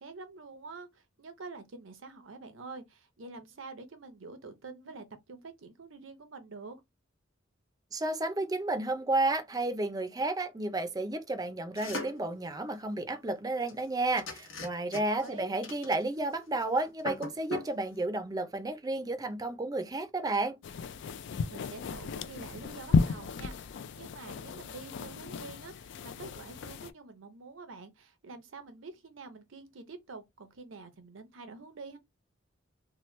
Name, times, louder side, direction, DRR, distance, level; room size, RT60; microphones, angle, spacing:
voice 1, 0.0-6.8 15.2-15.5 21.5-32.0, right 3 dB, 85° right, 0.7 m, -47 dB
voice 2, 7.9-20.6, right 2 dB, 20° right, 0.5 m, -32 dB
sound 1, 11.7-12.3 13.7-13.8 14.2-15.3 15.6-16.3 16.6-16.7 17.0-17.7, left 2 dB, 80° left, 1.0 m, -39 dB
sound 2, 20.6-26.9, left 5 dB, 65° left, 0.3 m, -33 dB
2.9 x 2.2 x 3.1 m
head